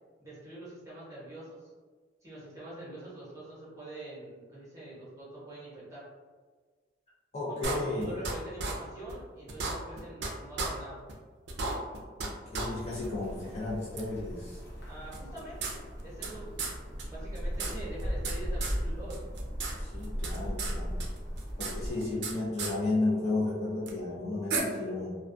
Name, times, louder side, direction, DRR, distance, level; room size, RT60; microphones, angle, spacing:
voice 1, 0.2-1.7 2.2-6.1 7.5-11.0 14.9-16.7 17.1-19.2, right 1 dB, 15° right, -9 dB, 0.9 m, -45 dB
voice 2, 7.3-8.2 12.3-14.6 19.8-21.0 21.6-25.2, left 2 dB, 35° left, -7 dB, 0.5 m, -33 dB
sound 1, 7.6-8.3 8.6-8.7 9.1-9.2 9.5-10.3 10.6-10.7 11.1-11.2 11.5-12.3 12.5-12.7 13.0-13.1 14.0-14.1 15.1-16.3 16.6-16.7 17.0-17.1 17.3-18.4 18.6-18.8 19.1-19.7 20.0-20.7 21.0-22.3 22.6-22.7 23.9-24.0 24.5-24.6, right 4 dB, 70° right, 0.4 m, -34 dB
sound 2, 12.6-21.9, equal, 70° left, 0.8 m, -37 dB
2.3 x 2.2 x 2.5 m, 1.5 s
head